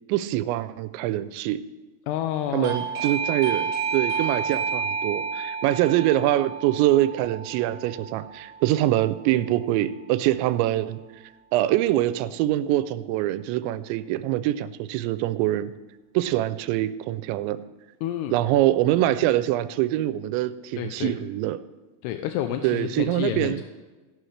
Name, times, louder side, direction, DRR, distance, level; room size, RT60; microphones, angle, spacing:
voice 1, 0.1-1.6 2.5-11.0 11.5-15.7 16.1-17.6 18.3-21.6 22.6-23.6, right 14 dB, 90° right, 14 dB, 2.9 m, -24 dB
voice 2, 2.1-3.1 18.0-18.4 20.8-21.2 22.0-23.6, left 11 dB, 80° left, 7 dB, 2.5 m, -30 dB
Doorbell, 2.6-9.1, right 6 dB, 70° right, 2.9 m, -30 dB
15.5 x 11.0 x 3.3 m, 1.2 s
omnidirectional pair, 5.1 m